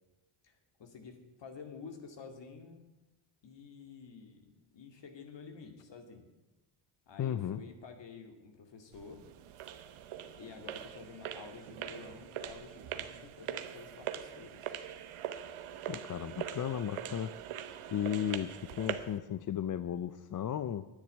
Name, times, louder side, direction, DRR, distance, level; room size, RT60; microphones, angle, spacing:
voice 1, 0.4-2.8 3.4-6.3 7.1-9.3 10.4-14.8, left 5 dB, 60° left, 6 dB, 2.6 m, -50 dB
voice 2, 7.2-7.6 15.9-17.3 17.9-20.9, left 9 dB, 40° left, 13 dB, 0.6 m, -35 dB
sound 1, 8.9-19.2, right 10 dB, 75° right, 1.1 m, -42 dB
10.5 x 9.9 x 9.3 m, 1.0 s
cardioid pair, 110°, 50 cm